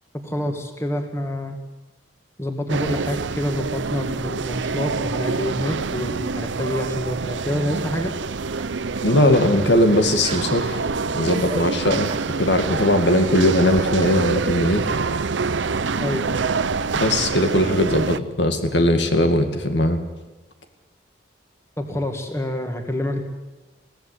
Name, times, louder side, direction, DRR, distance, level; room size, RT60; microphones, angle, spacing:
voice 1, 0.2-1.6 2.4-8.1 16.0-16.2 21.8-23.2, left 1 dB, 15° left, 4 dB, 2.2 m, -27 dB
sound 1, 2.7-18.2, right 4 dB, 80° right, 0.7 m, -26 dB
sound 2, 8.0-8.2 8.6-8.8 9.6-9.9 10.2-10.5 11.5-11.7 12.1-12.3 14.0-14.2, right 1 dB, 30° right, 1.5 m, -35 dB
voice 2, 9.0-10.8 11.1-12.1 12.4-14.9 16.9-20.0, left 1 dB, 70° left, 6 dB, 2.3 m, -19 dB
23.0 x 17.0 x 8.6 m, 1.1 s
head